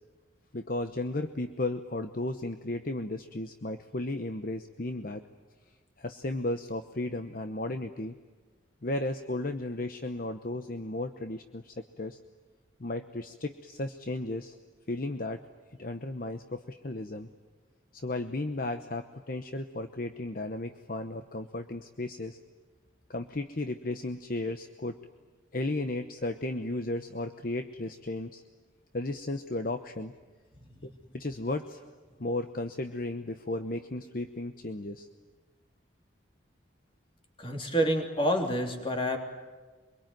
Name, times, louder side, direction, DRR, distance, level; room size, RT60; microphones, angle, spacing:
voice 1, 0.5-5.2 6.0-8.2 8.8-12.2 12.8-14.6 14.9-15.4 15.8-17.3 17.9-22.4 23.1-25.0 25.5-28.4 28.9-30.1 30.8-31.8 32.2-35.1, left 2 dB, 45° left, 8 dB, 0.9 m, -34 dB
voice 2, 37.4-39.2, equal, 25° left, 3 dB, 3.3 m, -28 dB
24.5 x 23.0 x 9.3 m, 1.3 s
head